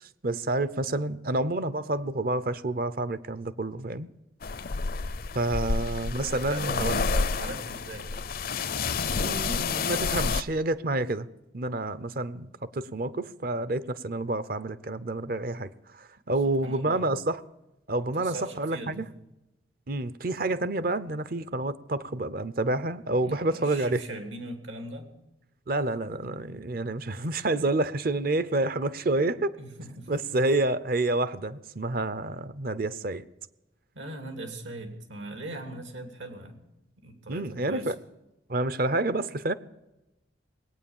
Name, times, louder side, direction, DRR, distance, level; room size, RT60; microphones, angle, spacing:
voice 1, 0.0-4.1 5.3-7.1 9.2-11.3 11.5-17.4 17.9-19.1 19.9-24.0 25.7-29.6 30.1-33.2 37.3-38.0 38.5-39.5, right 2 dB, 50° right, 16 dB, 0.6 m, -29 dB
sound 1, 4.4-10.4, left 4 dB, 50° left, 0.5 m, -29 dB
voice 2, 6.4-8.2 16.6-17.1 18.2-19.1 23.2-25.1 29.6-30.1 33.9-36.6 37.0-37.9, right 1 dB, 85° right, 5 dB, 2.7 m, -40 dB
19.5 x 9.1 x 7.2 m, 0.96 s
head